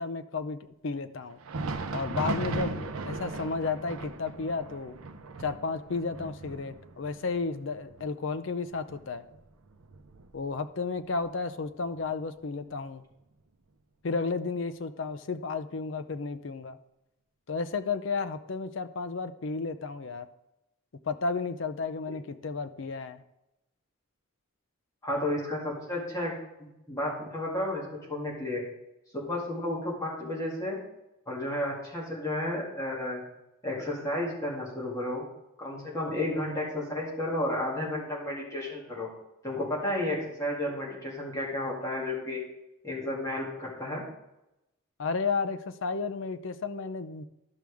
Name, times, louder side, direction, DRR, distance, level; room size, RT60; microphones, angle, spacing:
voice 1, 0.0-1.4 1.9-5.0 5.4-9.2 10.3-13.0 14.0-16.8 17.5-20.3 21.0-23.2 45.0-47.2, left 4 dB, 55° left, 10 dB, 0.5 m, -33 dB
Thunder, 1.3-10.7 11.1-11.3 11.9-12.1 13.1-13.2, right 3 dB, 75° right, 0.7 m, -38 dB
voice 2, 25.0-26.3 26.9-27.8 28.1-28.6 29.1-30.8 31.3-33.2 33.6-35.2 35.6-39.1 39.4-42.4 42.8-44.0, left 1 dB, 15° left, -5 dB, 2.3 m, -32 dB
11.5 x 6.2 x 3.5 m, 0.91 s
head